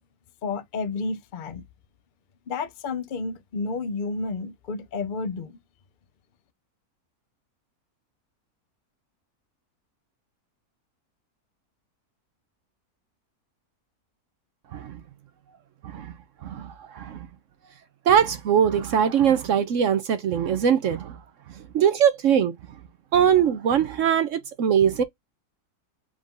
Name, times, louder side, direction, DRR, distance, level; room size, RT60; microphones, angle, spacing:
voice 1, 0.4-1.6 2.5-5.6, left 4 dB, 50° left, 0.6 m, -31 dB
voice 2, 16.4-17.2 18.1-21.2 21.7-22.5 23.1-25.0, right 8 dB, 65° right, 0.8 m, -21 dB
4.9 x 2.5 x 3.6 m
omnidirectional pair, 1.6 m